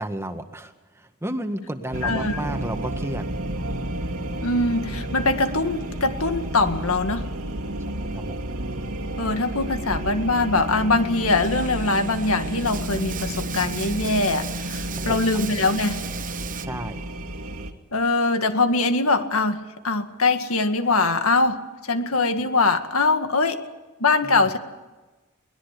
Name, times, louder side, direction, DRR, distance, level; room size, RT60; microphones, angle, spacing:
voice 1, 0.0-3.3 8.0-8.4 15.1-15.2 16.6-17.0 24.2-24.5, right 1 dB, 10° right, 7 dB, 1.6 m, -32 dB
sound 1, 1.9-17.7, right 1 dB, 85° right, 2.4 m, -31 dB
voice 2, 2.0-2.4 4.4-7.3 9.2-16.0 17.9-23.6 24.0-24.6, left 3 dB, 70° left, 8 dB, 1.9 m, -22 dB
Bathtub (filling or washing), 11.3-16.7, right 9 dB, 40° right, 1.0 m, -37 dB
22.5 x 19.5 x 8.3 m, 1.2 s
head